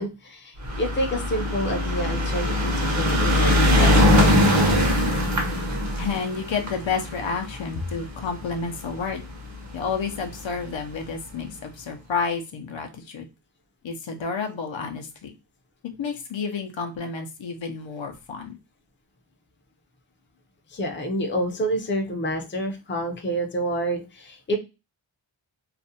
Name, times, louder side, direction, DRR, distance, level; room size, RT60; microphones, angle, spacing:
voice 1, 0.0-4.9 20.7-24.6, right 1 dB, 25° left, 3 dB, 0.5 m, -28 dB
sound 1, 0.6-9.1 9.9-10.0 10.2-10.3 10.6-10.7, left 1 dB, 35° right, 0.7 m, -21 dB
voice 2, 6.0-9.2 9.7-13.3 13.8-15.3 16.0-18.5, left 5 dB, 70° left, 4 dB, 0.6 m, -30 dB
2.4 x 2.1 x 2.7 m, 0.27 s
wide cardioid pair, 80°, 47 cm